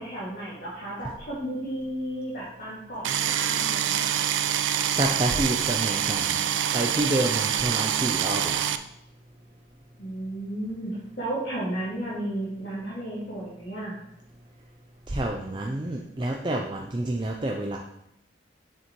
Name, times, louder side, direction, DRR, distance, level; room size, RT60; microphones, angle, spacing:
voice 1, 0.0-4.2 10.0-14.0, right 1 dB, 60° left, -9 dB, 2.2 m, -33 dB
sound 1, 3.0-8.8, right 10 dB, 85° right, 0.4 m, -26 dB
voice 2, 4.9-8.6 15.1-17.8, right 1 dB, 25° right, 0 dB, 0.5 m, -28 dB
6.8 x 6.5 x 3.1 m, 0.80 s
head